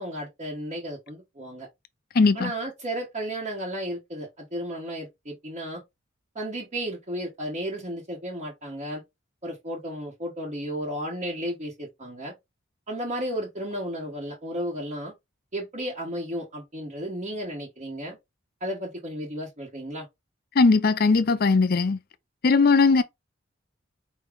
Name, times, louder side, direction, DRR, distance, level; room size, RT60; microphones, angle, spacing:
voice 1, 0.0-1.7 2.3-5.8 6.3-9.0 9.4-12.3 12.9-15.1 15.5-18.2 18.6-20.1, equal, 35° right, 1.4 m, -33 dB
voice 2, 2.2-2.5 20.6-22.0 22.4-23.0, left 4 dB, 50° left, 0.6 m, -19 dB
4.8 x 3.1 x 3.5 m
head